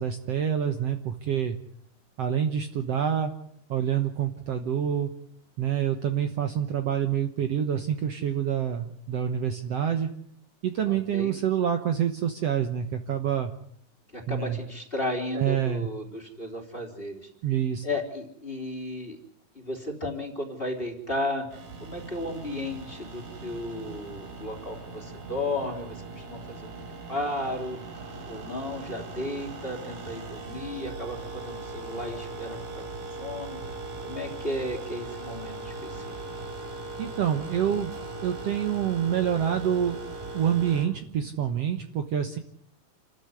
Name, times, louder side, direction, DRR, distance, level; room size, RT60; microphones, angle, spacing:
voice 1, 0.0-1.6 2.2-3.3 3.7-5.1 5.6-10.1 10.6-13.5 14.3-14.6 15.3-15.9 17.4-17.8 37.0-37.9 38.2-40.0 40.3-42.4, right 9 dB, 60° right, 6 dB, 2.0 m, -27 dB
voice 2, 10.9-11.3 14.1-17.3 17.8-19.2 19.6-26.7 27.1-27.8 28.3-33.6 34.0-36.1, left 1 dB, 15° left, 2 dB, 3.5 m, -34 dB
sound 1, 21.5-40.9, right 3 dB, 90° right, 5.3 m, -39 dB
29.0 x 13.5 x 9.7 m, 0.70 s
omnidirectional pair, 3.7 m